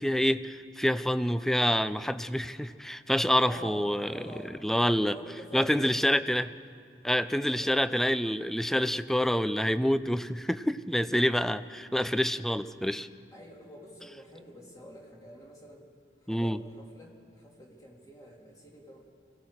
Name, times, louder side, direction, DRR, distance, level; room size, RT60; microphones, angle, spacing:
voice 1, 0.0-4.3 4.6-5.2 5.5-6.5 7.0-13.1 16.3-16.6, equal, ahead, 13 dB, 0.4 m, -27 dB
voice 2, 3.4-4.6 5.1-6.3 7.5-7.7 13.3-15.8 16.2-19.1, equal, 20° left, -1 dB, 2.6 m, -47 dB
25.5 x 17.0 x 6.5 m, 2.3 s
head